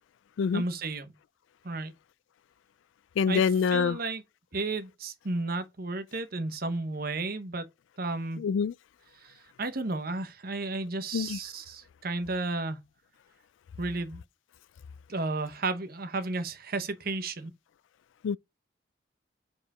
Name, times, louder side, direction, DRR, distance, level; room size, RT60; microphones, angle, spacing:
voice 1, 0.5-1.1 1.6-1.9 3.3-4.2 4.5-7.7 8.0-8.4 9.2-12.8 13.8-14.2 15.1-17.5, right 3 dB, 55° right, 1.0 m, -33 dB
voice 2, 3.2-4.0 8.4-8.7 11.1-11.4 18.2-18.4, left 6 dB, 80° left, 0.3 m, -25 dB
5.1 x 4.7 x 4.8 m
head